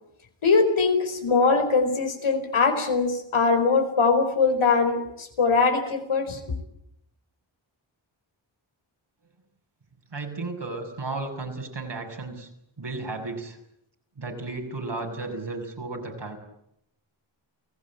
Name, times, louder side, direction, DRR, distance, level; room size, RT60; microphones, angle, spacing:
voice 1, 0.4-6.4, left 4 dB, 85° left, 7 dB, 4.8 m, -22 dB
voice 2, 10.1-12.5 12.8-13.6 14.2-16.4, right 3 dB, 60° right, 3 dB, 7.0 m, -34 dB
29.5 x 17.0 x 8.7 m, 0.77 s
cardioid pair, 55°, 48 cm